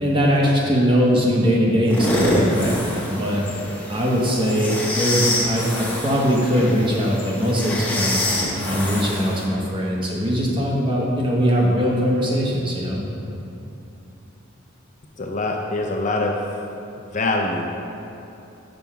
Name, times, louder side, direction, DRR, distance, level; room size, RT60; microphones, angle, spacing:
voice 1, 0.0-2.8 3.1-3.4 3.9-8.2 8.6-13.0, equal, 25° right, -3 dB, 0.9 m, -21 dB
sound 1, 1.9-9.5, left 1 dB, 10° left, 0.7 m, -26 dB
voice 2, 15.2-16.5 17.0-17.7, left 2 dB, 35° left, 1 dB, 0.4 m, -24 dB
6.0 x 5.4 x 4.5 m, 2.8 s
head